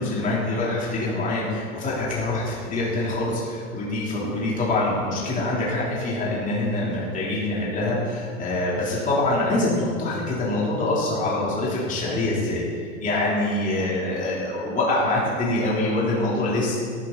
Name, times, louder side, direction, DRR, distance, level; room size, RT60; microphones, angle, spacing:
voice 1, 0.0-16.7, left 2 dB, 20° left, -6 dB, 3.3 m, -25 dB
13.5 x 10.0 x 4.0 m, 2.1 s
supercardioid pair, 145°, 41 cm